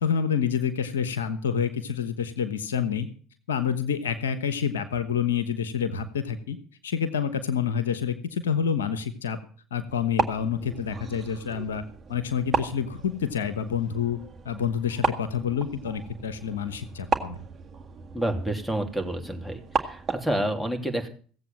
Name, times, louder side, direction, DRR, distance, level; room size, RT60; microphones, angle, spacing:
voice 1, 0.0-3.1 3.5-6.6 6.8-9.4 9.7-11.8 12.1-14.2 14.4-17.4, left 7 dB, 85° left, 11 dB, 1.1 m, -28 dB
sound 1, 9.9-20.4, right 6 dB, 35° right, 1.8 m, -34 dB
voice 2, 18.1-21.1, right 1 dB, 5° left, 6 dB, 3.1 m, -29 dB
16.0 x 8.0 x 7.4 m, 0.44 s
hypercardioid pair, 70°, 0 cm